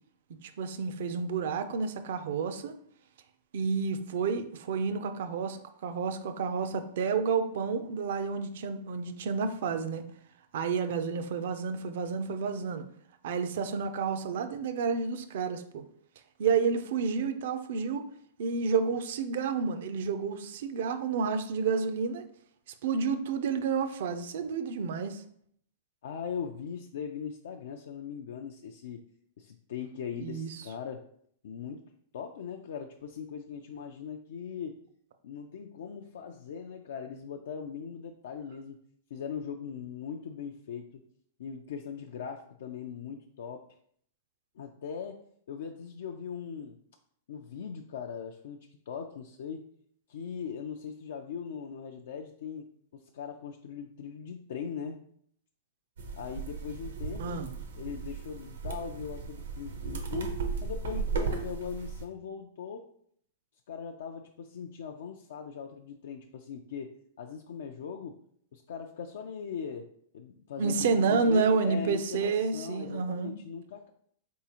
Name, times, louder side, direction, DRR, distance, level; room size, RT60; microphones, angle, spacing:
voice 1, 0.4-2.7 3.5-10.0 10.5-12.8 13.2-15.8 16.4-18.1 18.4-22.2 22.8-25.2 30.2-30.5 57.2-57.5 70.6-73.3, right 5 dB, 70° right, 9 dB, 0.4 m, -30 dB
voice 2, 26.0-29.0 29.4-31.1 31.4-31.8 32.1-34.8 35.2-38.8 39.1-41.0 41.4-43.7 44.6-46.8 47.3-48.6 48.9-49.6 50.1-55.0 56.2-57.4 57.8-62.9 63.7-68.2 68.5-73.9, left 7 dB, 75° left, 3 dB, 0.3 m, -40 dB
sound 1, 56.0-62.0, right 4 dB, 85° right, 0.8 m, -36 dB
4.1 x 3.6 x 2.9 m, 0.64 s
hypercardioid pair, 130°, 0 cm